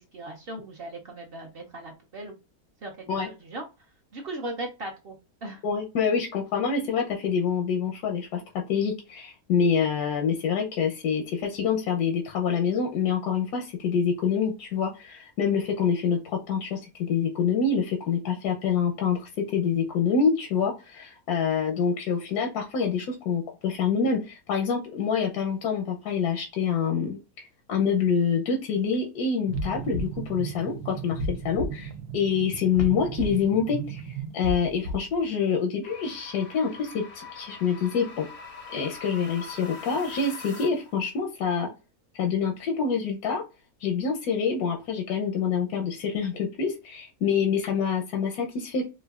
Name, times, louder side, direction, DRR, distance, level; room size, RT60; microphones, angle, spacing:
voice 1, 0.1-2.3 2.8-2.9 3.2-3.6 4.1-5.2 5.4-5.6, right 1 dB, 55° right, 2 dB, 0.7 m, -37 dB
voice 2, 5.6-38.3 38.7-41.7 42.1-43.4 43.8-48.9, left 6 dB, 90° left, 1 dB, 1.2 m, -26 dB
sound 1, 29.5-35.2, right 2 dB, 85° right, 1.1 m, -34 dB
sound 2, 35.8-41.0, left 4 dB, 40° left, 0.5 m, -43 dB
4.6 x 2.5 x 2.3 m, 0.28 s
omnidirectional pair, 1.6 m